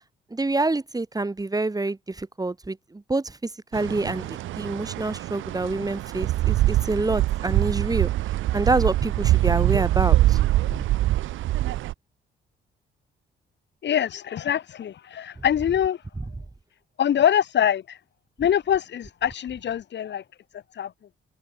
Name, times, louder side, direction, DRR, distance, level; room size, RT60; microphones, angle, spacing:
voice 1, 0.3-3.4 3.7-8.1 8.5-10.4 10.7-10.8, right 2 dB, 20° right, 6.2 m, -27 dB
sound 1, 3.7-11.9, right 15 dB, 80° right, 0.7 m, -23 dB
voice 2, 13.8-16.0 17.0-18.0 18.4-20.2 20.5-20.9, left 9 dB, 65° left, 4.9 m, -24 dB
open air
cardioid pair, 90°, 20 cm